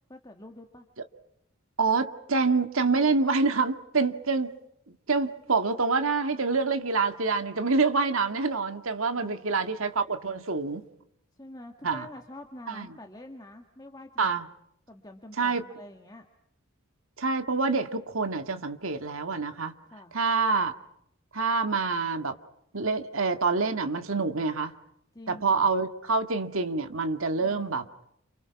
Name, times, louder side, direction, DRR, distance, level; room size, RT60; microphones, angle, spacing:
voice 1, 0.1-0.9 9.1-9.6 11.3-14.3 14.9-16.3 19.9-20.1 25.1-25.7 27.4-27.7, left 1 dB, 20° left, 1.8 m, -46 dB
voice 2, 1.8-4.5 4.9-10.9 11.8-12.1 12.7-12.9 14.2-14.5 15.4-15.6 17.2-19.7 20.1-20.7 21.3-22.4 22.7-24.7 25.3-27.8, right 4 dB, 75° right, 2.0 m, -26 dB
30.0 x 28.5 x 5.9 m
head